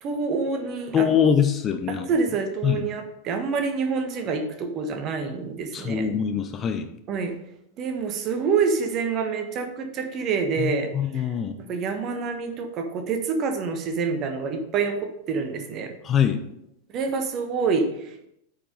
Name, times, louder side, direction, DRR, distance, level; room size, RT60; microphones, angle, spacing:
voice 1, 0.0-1.1 1.9-6.1 7.1-7.3 7.8-11.3 11.7-15.9 16.9-18.3, right 5 dB, 35° right, 6 dB, 1.3 m, -27 dB
voice 2, 0.9-2.1 2.6-2.8 5.7-6.9 10.6-11.5 16.0-16.4, left 8 dB, 25° left, 7 dB, 0.7 m, -23 dB
8.6 x 5.2 x 5.2 m, 0.80 s
figure-of-eight pair, 90°, 0 cm